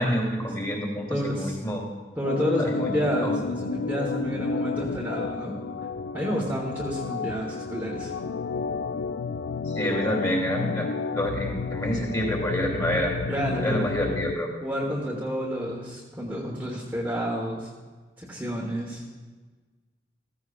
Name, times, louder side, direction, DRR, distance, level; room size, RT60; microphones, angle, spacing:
voice 1, 0.0-1.8 2.6-2.9 3.2-3.4 9.7-13.1 13.6-14.5, equal, 20° left, -1 dB, 2.9 m, -28 dB
voice 2, 1.1-1.6 2.2-5.5 6.1-8.1 13.3-13.9 14.6-17.7 18.2-19.0, equal, 10° right, -4 dB, 1.3 m, -30 dB
Organ, 2.2-14.4, left 4 dB, 80° left, 0.4 m, -31 dB
15.0 x 15.0 x 2.5 m, 1.4 s
head